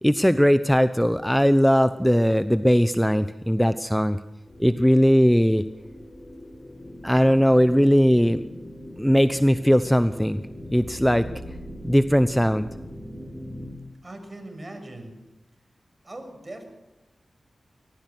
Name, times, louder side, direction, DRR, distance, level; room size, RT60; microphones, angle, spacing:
voice 1, 0.0-4.2 4.6-5.6 7.0-8.4 9.0-10.4 10.7-11.3 11.9-12.7, equal, 5° left, 12 dB, 0.9 m, -19 dB
sound 1, 4.5-13.7, equal, 40° left, 7.7 m, -40 dB
voice 2, 14.0-15.1 16.0-16.6, right 1 dB, 40° right, 6 dB, 6.4 m, -40 dB
22.5 x 19.0 x 6.2 m, 1.0 s
cardioid pair, 45°, 0 cm